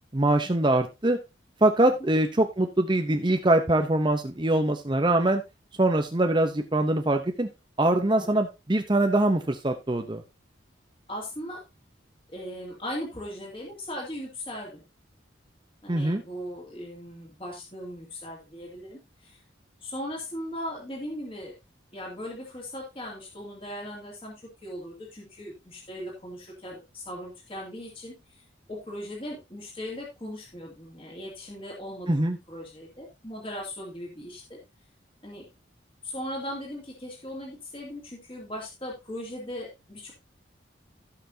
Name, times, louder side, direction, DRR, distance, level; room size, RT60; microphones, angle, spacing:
voice 1, 0.1-1.2 1.6-5.4 5.8-7.5 7.8-10.2 15.9-16.2 32.1-32.4, right 1 dB, 25° right, 5 dB, 0.7 m, -23 dB
voice 2, 11.1-11.6 12.3-14.8 15.8-19.4 19.8-21.5 21.9-24.3 24.6-28.4 28.7-34.6 35.2-35.4 36.0-40.1, equal, 30° left, -2 dB, 2.6 m, -38 dB
17.0 x 5.9 x 2.8 m, 0.25 s
head